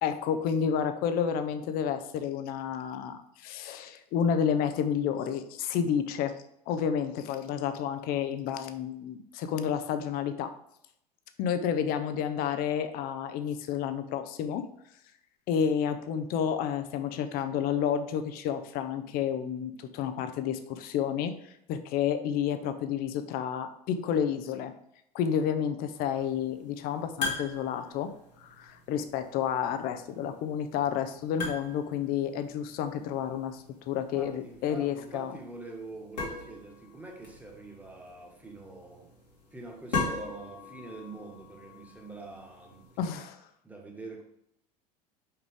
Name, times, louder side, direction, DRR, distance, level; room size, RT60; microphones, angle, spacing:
voice 1, 0.0-6.4 6.7-10.5 11.4-14.7 15.5-21.3 21.7-24.7 25.1-28.1 28.4-35.3 43.0-43.4, left 8 dB, 45° left, 9 dB, 0.7 m, -30 dB
sound 1, 26.0-43.2, left 3 dB, 85° left, 2.4 m, -41 dB
voice 2, 34.1-39.1 39.5-42.8 43.6-44.2, right 2 dB, 5° right, 1 dB, 1.6 m, -45 dB
5.6 x 5.2 x 3.6 m, 0.75 s
figure-of-eight pair, 80°, 21 cm